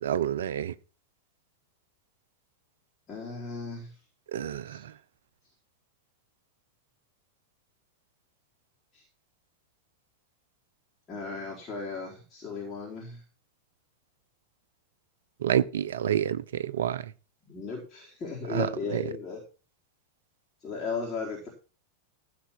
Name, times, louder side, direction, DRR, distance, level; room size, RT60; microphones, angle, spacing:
voice 1, 0.0-0.7 4.3-4.8 15.4-17.0 18.5-18.7 18.9-19.0, right 10 dB, 60° right, 0.7 m, -28 dB
voice 2, 3.1-3.9 4.7-4.8 8.9-9.0 11.1-13.2 17.5-19.4 20.6-21.5, left 4 dB, 25° left, 4.4 m, -36 dB
15.0 x 5.3 x 6.0 m
figure-of-eight pair, 90°, 0 cm